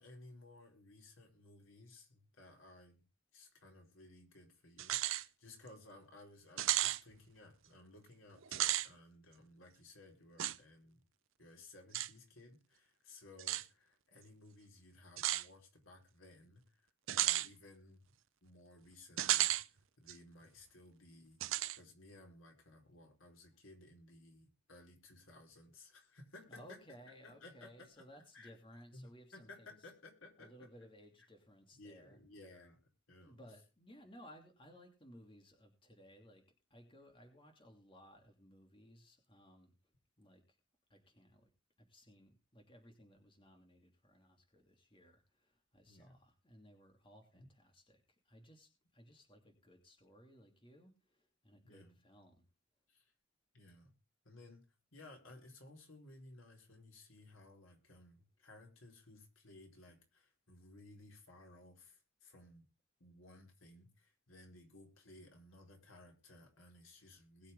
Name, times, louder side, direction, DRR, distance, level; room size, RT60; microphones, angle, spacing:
voice 1, 0.0-3.0 3.3-11.0 11.4-16.8 17.1-18.0 18.4-19.5 20.0-21.4 21.8-26.8 27.2-28.1 28.3-28.5 28.9-30.7 31.7-32.8 33.1-33.5 45.8-46.2 47.3-47.5 51.6-52.0 52.9-53.1 53.5-53.9 54.2-54.6 54.9-62.6 63.0-67.5, left 2 dB, 85° left, 2 dB, 4.5 m, -58 dB
sound 1, 4.8-5.2 5.7-5.8 6.6-7.0 8.4-8.9 10.4-10.6 11.9-12.1 13.4-13.6 15.2-15.5 17.1-17.5 19.2-19.6 20.1-20.2 21.4-21.8, right 14 dB, 80° right, 0.6 m, -33 dB
voice 2, 26.5-29.9 30.4-32.6 33.2-36.4 36.7-39.7 40.2-40.4 40.9-41.5 41.8-52.5, equal, 25° left, 3 dB, 2.9 m, -60 dB
21.5 x 7.2 x 3.6 m, 0.29 s
head